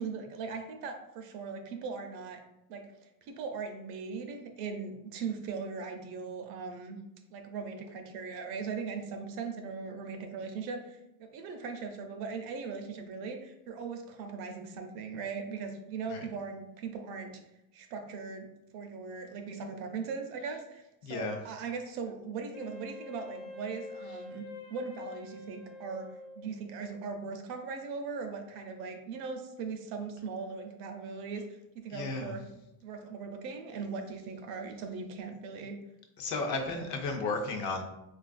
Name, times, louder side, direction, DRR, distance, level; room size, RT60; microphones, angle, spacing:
voice 1, 0.0-2.4 2.7-2.9 3.2-7.0 7.3-17.4 17.7-18.5 18.7-32.4 32.8-35.8 36.7-36.8 37.1-37.3, right 5 dB, 55° right, 5 dB, 0.5 m, -39 dB
voice 2, 21.0-21.4 31.9-32.3 36.2-37.8, left 3 dB, 45° left, 3 dB, 0.5 m, -33 dB
Wind instrument woodwind instrument, 22.5-26.8, left 3 dB, 90° left, 0.8 m, -46 dB
3.8 x 2.4 x 2.4 m, 0.89 s
cardioid pair, 150°, 44 cm